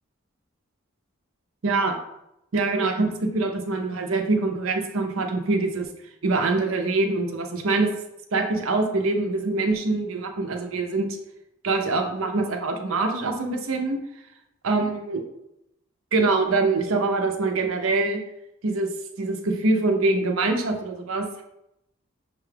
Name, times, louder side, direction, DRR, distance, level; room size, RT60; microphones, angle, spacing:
voice 1, 1.6-2.0 2.5-5.9 6.2-7.9 8.3-11.2 11.6-14.0 14.6-15.2 16.1-18.2 18.6-18.9 19.2-21.4, right 3 dB, 85° right, 4 dB, 0.6 m, -24 dB
6.5 x 2.3 x 3.3 m, 0.84 s
head